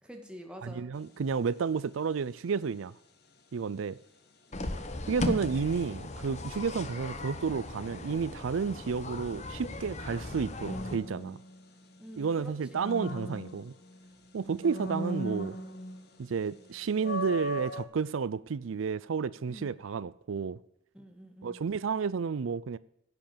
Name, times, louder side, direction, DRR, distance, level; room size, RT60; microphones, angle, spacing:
voice 1, 0.0-0.9 4.5-4.9 12.0-12.8 14.4-14.7 19.5-19.8 20.9-21.6, equal, 5° right, 1.9 m, -47 dB
voice 2, 0.6-2.9 3.5-4.0 5.1-11.4 12.2-13.7 14.3-15.6 16.2-20.6 21.4-22.8, right 5 dB, 85° right, 0.4 m, -31 dB
sound 1, 0.9-1.3 10.6-12.0 12.4-14.1 14.6-16.2 16.5-16.6 17.0-17.9, equal, 55° left, 1.4 m, -37 dB
sound 2, 4.5-11.0, left 2 dB, 35° left, 1.0 m, -37 dB
11.0 x 7.8 x 6.8 m
head